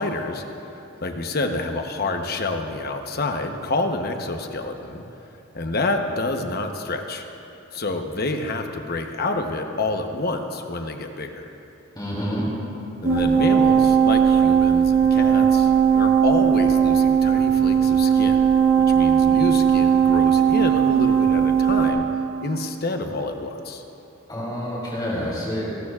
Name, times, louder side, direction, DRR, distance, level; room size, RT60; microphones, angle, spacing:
voice 1, 0.0-5.0 5.5-7.2 7.7-11.5 13.0-18.5 18.8-22.1 22.4-23.8, left 2 dB, 50° left, 5 dB, 1.0 m, -28 dB
voice 2, 11.9-12.5 24.3-25.6, equal, 20° left, -6 dB, 3.2 m, -28 dB
sound 1, 13.0-21.9, right 7 dB, 85° right, 1.5 m, -18 dB
28.0 x 13.0 x 2.4 m, 2.9 s
head